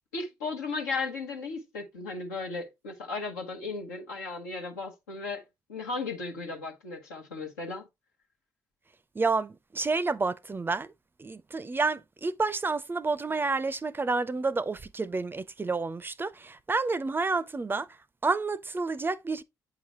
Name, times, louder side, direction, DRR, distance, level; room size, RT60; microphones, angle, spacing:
voice 1, 0.1-5.4 5.7-7.9, left 3 dB, 80° left, 0.9 m, -35 dB
voice 2, 9.2-10.9 11.2-17.9 18.2-19.4, right 3 dB, 25° right, 0.5 m, -29 dB
8.2 x 4.8 x 3.0 m
figure-of-eight pair, 40°, 9 cm